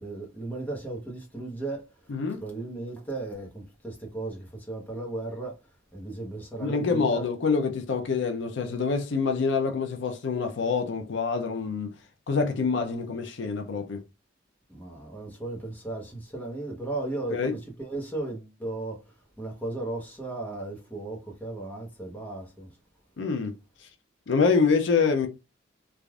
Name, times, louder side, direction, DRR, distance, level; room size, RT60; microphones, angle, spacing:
voice 1, 0.0-1.9 2.4-5.6 5.9-7.3 14.7-19.0 19.4-22.7, right 2 dB, 10° left, 0.9 m, -35 dB
voice 2, 2.1-2.4 6.6-11.9 12.3-14.0 17.3-17.5 23.2-23.5 23.8-23.9 24.3-25.3, left 5 dB, 60° left, 0.5 m, -26 dB
3.3 x 2.5 x 2.3 m
head